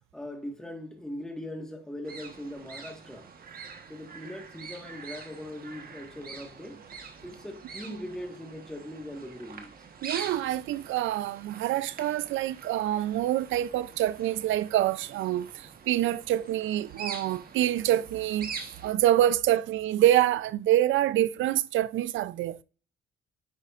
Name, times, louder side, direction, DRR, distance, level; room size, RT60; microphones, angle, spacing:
voice 1, 0.1-3.3 3.9-6.8 7.2-9.7, left 1 dB, 5° left, 1.5 m, -40 dB
sound 1, 2.0-18.9, right 5 dB, 50° right, 1.2 m, -44 dB
voice 2, 10.0-15.5 15.9-18.5 18.8-22.6, right 13 dB, 75° right, 0.4 m, -26 dB
9.8 x 5.0 x 2.4 m
cardioid pair, 90°, 20 cm